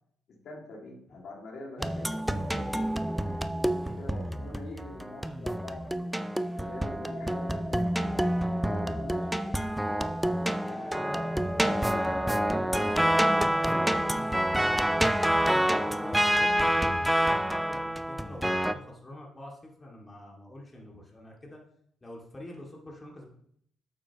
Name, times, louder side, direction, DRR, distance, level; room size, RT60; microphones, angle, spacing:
voice 1, 0.3-2.8 3.7-6.2 6.5-8.2 8.7-9.6 10.6-14.2, left 2 dB, 65° left, -1 dB, 2.2 m, -45 dB
sound 1, 1.8-18.7, equal, 5° right, 0.5 m, -28 dB
voice 2, 10.9-12.1 15.4-21.6 22.0-23.3, left 1 dB, 20° left, -2 dB, 2.2 m, -46 dB
9.0 x 7.4 x 3.0 m, 0.68 s
cardioid pair, 90°, 0 cm